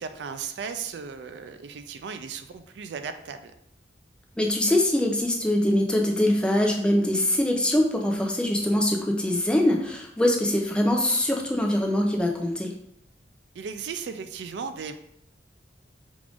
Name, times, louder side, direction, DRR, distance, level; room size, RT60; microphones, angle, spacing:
voice 1, 0.0-3.5 13.5-14.9, right 6 dB, 75° right, 9 dB, 0.4 m, -36 dB
voice 2, 4.4-12.7, left 1 dB, 5° left, 1 dB, 0.4 m, -23 dB
5.0 x 2.5 x 3.5 m, 0.76 s
head